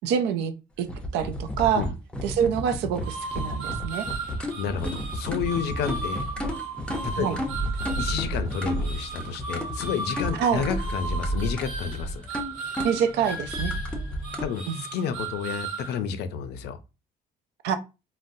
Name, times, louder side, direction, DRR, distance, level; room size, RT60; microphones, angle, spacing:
voice 1, 0.0-0.9 1.1-1.9 2.2-4.1 7.1-7.4 10.4-10.6 12.8-13.7 14.7-14.8 17.6-17.8, right 8 dB, 85° right, 0.5 m, -26 dB
sound 1, 0.8-14.5, equal, 5° left, 0.6 m, -32 dB
sound 2, 3.0-16.0, right 3 dB, 55° right, 1.3 m, -36 dB
voice 2, 4.6-6.2 7.0-7.3 8.0-12.2 14.4-16.8, left 7 dB, 80° left, 0.5 m, -30 dB
3.8 x 2.0 x 2.6 m
cardioid pair, 110°, 17 cm